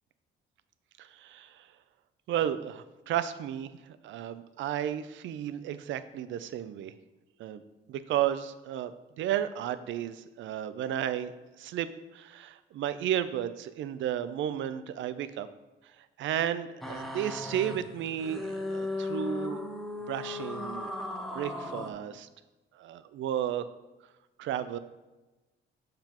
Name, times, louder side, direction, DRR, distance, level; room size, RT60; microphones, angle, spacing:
voice 1, 1.0-1.7 2.3-6.9 7.4-7.6 7.9-11.3 11.6-11.9 12.1-15.5 16.2-19.6 20.1-20.9 21.3-22.3 22.8-23.6 24.4-24.8, right 10 dB, 75° right, 13 dB, 0.4 m, -33 dB
sound 1, 16.8-21.9, left 2 dB, ahead, 0.8 m, -36 dB
6.7 x 5.8 x 2.9 m, 1.1 s
cardioid pair, 90°, 20 cm